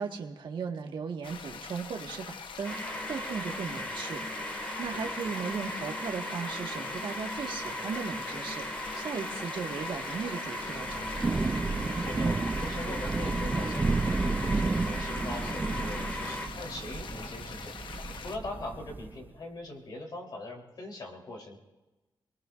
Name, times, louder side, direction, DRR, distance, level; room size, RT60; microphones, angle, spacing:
voice 1, 0.0-2.7 3.1-4.2 4.5-8.6 9.0-11.4, right 5 dB, 80° right, 3 dB, 1.6 m, -37 dB
sound 1, 1.2-18.4, left 6 dB, 85° left, 1.0 m, -44 dB
sound 2, 2.6-16.5, equal, 20° left, 2.1 m, -37 dB
Thunder / Rain, 10.6-19.2, right 3 dB, 25° right, 0.4 m, -32 dB
voice 2, 12.0-21.6, left 2 dB, 60° left, 0 dB, 3.5 m, -42 dB
27.5 x 20.5 x 2.5 m, 1.1 s
wide cardioid pair, 145°, 8 cm